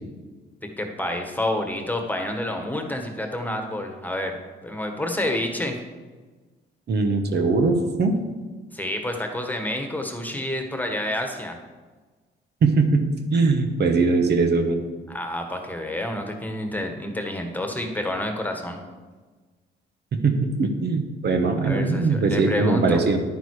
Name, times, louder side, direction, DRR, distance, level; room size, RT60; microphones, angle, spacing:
voice 1, 0.8-5.8 8.7-11.6 15.1-18.8 21.6-23.0, left 1 dB, 10° left, 4 dB, 1.6 m, -29 dB
voice 2, 6.9-8.1 12.6-14.8 20.1-23.2, right 3 dB, 55° right, 5 dB, 1.3 m, -21 dB
10.5 x 9.2 x 4.9 m, 1.3 s
cardioid pair, 90°, 20 cm